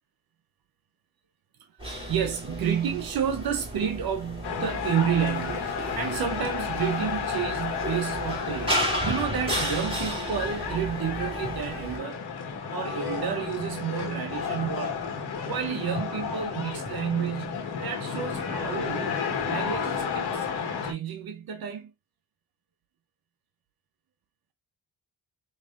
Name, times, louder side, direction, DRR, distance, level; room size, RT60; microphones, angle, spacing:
sound 1, 1.8-12.0, equal, 15° right, 3.3 m, -33 dB
voice 1, 2.1-12.2 12.7-15.0 15.4-19.1 19.5-20.5 20.8-21.9, right 8 dB, 65° right, 0.9 m, -30 dB
sound 2, 4.4-20.9, left 6 dB, 75° left, 1.5 m, -32 dB
5.3 x 3.2 x 2.5 m
cardioid pair, 105°, 39 cm